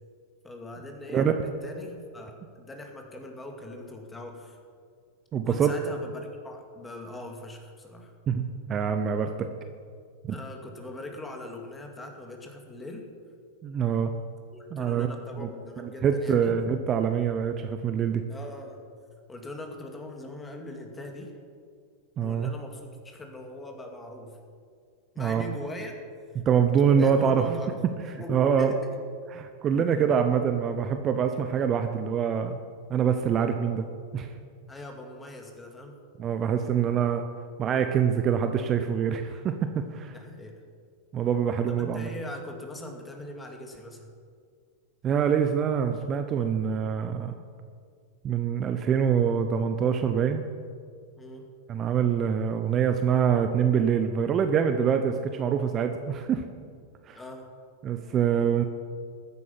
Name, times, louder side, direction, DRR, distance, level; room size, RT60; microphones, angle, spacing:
voice 1, 0.4-4.6 5.3-8.1 10.3-13.0 14.5-16.6 18.3-18.8 19.3-21.3 22.2-24.4 25.1-25.9 26.7-27.8 28.2-28.9 29.8-30.1 34.7-36.0 40.1-40.6 41.7-44.1 51.2-51.5 57.1-57.5, left 1 dB, 15° left, 2 dB, 2.5 m, -41 dB
voice 2, 5.3-5.8 8.3-9.5 10.3-10.4 13.6-14.1 14.7-15.1 15.4-15.5 15.8-18.2 22.2-22.5 25.2-25.4 26.5-27.5 28.0-28.7 29.3-32.6 32.9-33.9 34.1-34.3 36.2-37.2 37.6-40.1 41.1-42.1 45.0-47.3 48.2-50.4 51.7-56.4 57.1-57.2 57.8-58.6, right 7 dB, 35° right, 7 dB, 0.8 m, -25 dB
14.0 x 9.8 x 5.8 m, 2.1 s
hypercardioid pair, 100°, 0 cm